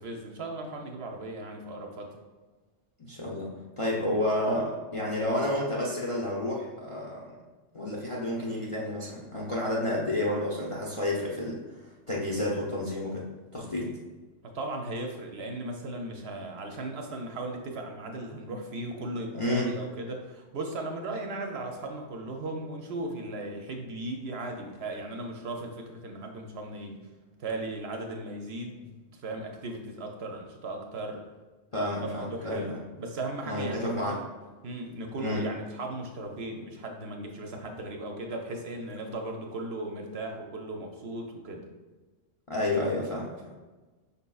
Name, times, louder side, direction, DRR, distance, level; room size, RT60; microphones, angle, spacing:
voice 1, 0.0-2.1 14.4-27.1 27.4-31.2 32.0-34.3 34.6-41.6, right 2 dB, 65° right, 2 dB, 0.7 m, -37 dB
voice 2, 3.1-3.5 3.8-7.3 7.7-11.6 12.1-13.2 13.5-13.9 19.4-19.7 31.7-32.7 33.4-34.2 35.2-35.4 42.5-43.3, left 1 dB, 40° left, -5 dB, 0.5 m, -30 dB
5.6 x 4.0 x 2.3 m, 1.3 s
omnidirectional pair, 1.3 m